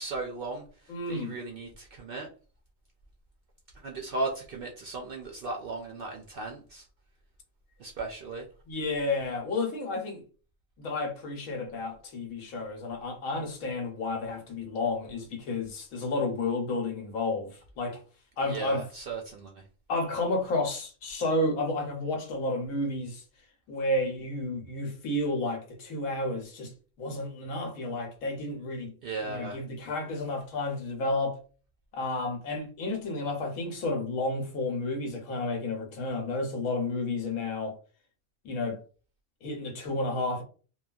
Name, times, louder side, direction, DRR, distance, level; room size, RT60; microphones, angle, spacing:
voice 1, 0.0-2.3 3.8-6.9 7.8-8.5 18.4-19.6 29.0-29.6, right 3 dB, 65° right, 0.5 m, -36 dB
voice 2, 0.9-1.3 8.7-10.2 10.8-18.0 18.4-18.8 19.9-23.2 23.7-26.7 27.0-28.9 29.2-31.4 31.9-37.8 38.4-38.8 39.4-40.4, left 2 dB, 90° left, 1.2 m, -31 dB
3.1 x 2.2 x 2.3 m
omnidirectional pair, 1.4 m